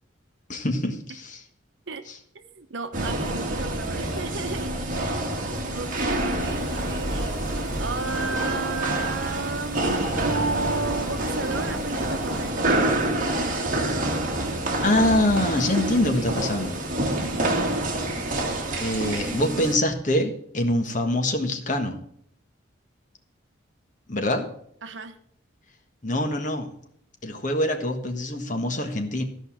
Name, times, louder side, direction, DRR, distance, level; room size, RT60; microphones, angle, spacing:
voice 1, 0.5-1.4 2.1-2.2 14.8-16.8 18.8-22.0 24.1-24.5 26.0-26.7 27.2-29.2, left 1 dB, 40° left, 5 dB, 1.4 m, -24 dB
voice 2, 2.3-4.8 5.7-12.9 24.8-25.2, right 3 dB, 65° right, 9 dB, 1.0 m, -33 dB
sound 1, 2.9-19.8, right 1 dB, 40° right, 1.7 m, -27 dB
sound 2, 6.4-12.5, equal, 80° left, 1.8 m, -44 dB
14.0 x 5.3 x 7.4 m, 0.65 s
head